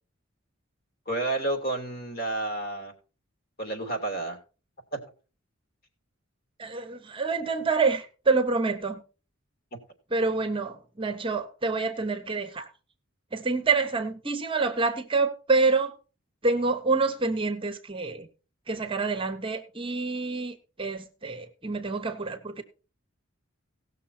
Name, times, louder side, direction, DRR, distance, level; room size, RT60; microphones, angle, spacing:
voice 1, 1.1-2.9 3.6-4.4, right 2 dB, 50° left, 3.1 m, -30 dB
voice 2, 6.6-9.0 10.1-12.7 13.3-15.9 16.4-18.3 18.7-22.6, right 4 dB, 25° right, 1.1 m, -27 dB
17.5 x 6.6 x 4.3 m
head